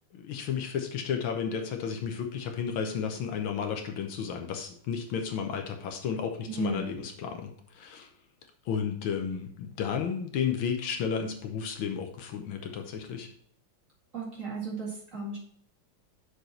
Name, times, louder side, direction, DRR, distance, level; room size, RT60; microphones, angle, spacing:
voice 1, 0.1-8.1 8.7-13.3, left 7 dB, 75° left, 4 dB, 1.6 m, -32 dB
voice 2, 6.5-6.9 14.1-15.4, right 4 dB, 35° right, -4 dB, 2.4 m, -35 dB
6.5 x 5.0 x 4.4 m, 0.63 s
omnidirectional pair, 2.4 m